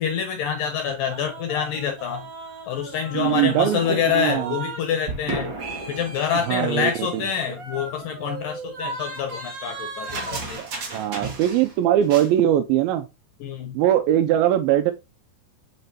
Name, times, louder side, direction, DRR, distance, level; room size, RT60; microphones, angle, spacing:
voice 1, 0.0-2.3 2.7-5.5 5.9-10.6 13.4-13.8, left 8 dB, 75° left, 2.2 m, -26 dB
sound 1, 1.1-4.8 5.1-11.8 12.0-12.3, right 3 dB, 60° right, 1.1 m, -35 dB
voice 2, 3.1-4.5 6.5-7.2 10.6-13.1 13.7-14.9, right 11 dB, 80° right, 2.3 m, -21 dB
7.9 x 5.1 x 2.7 m
omnidirectional pair, 4.7 m